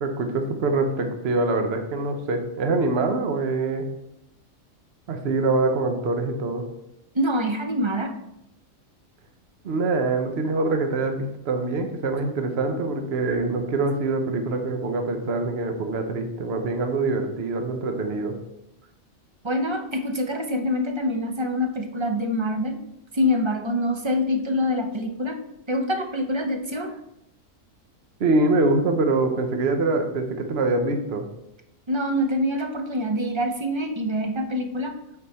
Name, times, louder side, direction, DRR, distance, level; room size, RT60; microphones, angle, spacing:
voice 1, 0.0-3.8 5.1-6.6 9.6-18.3 28.2-31.3, right 3 dB, 50° right, 5 dB, 1.1 m, -24 dB
voice 2, 7.1-8.2 19.4-22.8 23.1-25.4 25.7-27.0 31.9-34.9, left 1 dB, 30° right, 5 dB, 0.5 m, -25 dB
9.0 x 4.4 x 4.2 m, 0.84 s
omnidirectional pair, 1.5 m